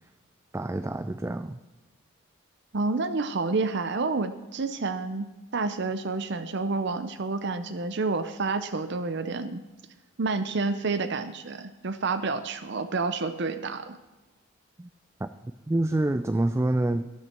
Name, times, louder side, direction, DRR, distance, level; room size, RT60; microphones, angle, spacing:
voice 1, 0.5-1.6 14.8-14.9 15.2-15.3 15.7-17.1, right 1 dB, 15° right, 10 dB, 0.3 m, -27 dB
voice 2, 2.7-9.6 10.2-14.0, right 3 dB, 55° right, 10 dB, 0.6 m, -29 dB
12.5 x 12.0 x 4.4 m, 1.1 s
head